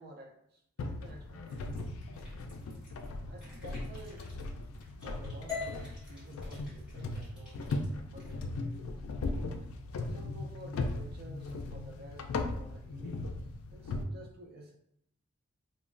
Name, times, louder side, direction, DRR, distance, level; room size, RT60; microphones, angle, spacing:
voice 1, 0.0-2.0 3.3-4.3 5.0-7.7 8.1-9.0 10.1-13.3 13.7-14.8, right 1 dB, 45° right, 1 dB, 0.4 m, -52 dB
sound 1, 0.8-14.0, left 2 dB, 75° left, 0.3 m, -38 dB
sound 2, 1.5-3.1 3.4-5.3 5.6-8.3, equal, 5° right, 1.4 m, -59 dB
sound 3, 5.5-9.6, left 5 dB, 20° left, 0.8 m, -45 dB
3.0 x 2.1 x 2.4 m, 0.73 s
head